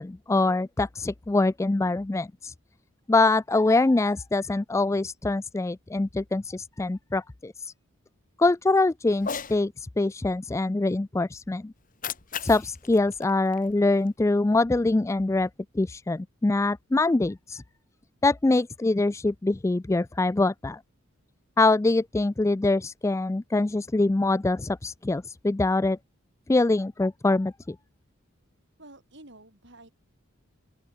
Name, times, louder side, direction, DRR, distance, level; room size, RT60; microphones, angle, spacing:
voice 1, 0.0-2.5 3.1-7.7 8.4-11.7 12.4-15.5 15.7-17.6 18.2-20.8 21.6-26.0 26.5-27.8, left 2 dB, 15° left, 0.3 m, -24 dB
Cat, 9.1-9.6 11.8-14.1, left 6 dB, 40° left, 2.4 m, -37 dB
voice 2, 28.8-29.9, right 2 dB, 60° right, 7.6 m, -49 dB
open air
head